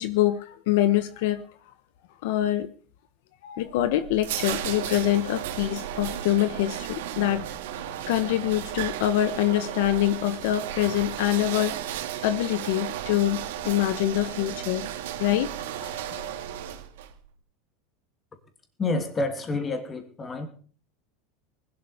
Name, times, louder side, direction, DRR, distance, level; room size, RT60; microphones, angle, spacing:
voice 1, 0.0-1.4 2.2-2.7 3.4-7.5 7.9-11.7 12.2-14.9 15.2-15.5 15.8-16.3, left 13 dB, 70° left, 12 dB, 1.1 m, -25 dB
sound 1, 3.6-17.1, right 11 dB, 85° right, 2.1 m, -34 dB
voice 2, 18.8-20.5, left 3 dB, 15° left, 6 dB, 2.8 m, -28 dB
20.5 x 12.0 x 5.1 m, 0.43 s
supercardioid pair, 160°, 0 cm